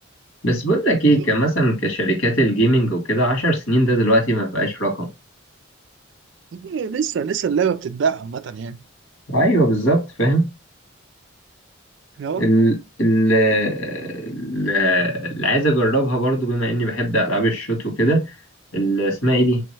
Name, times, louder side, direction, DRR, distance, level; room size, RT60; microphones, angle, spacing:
voice 1, 0.4-5.1 9.3-10.5 12.4-18.2 18.7-19.6, right 1 dB, 65° left, 1.8 m, -19 dB
voice 2, 6.5-8.8 12.2-12.4, right 6 dB, 60° right, 0.3 m, -24 dB
3.4 x 3.0 x 3.2 m
head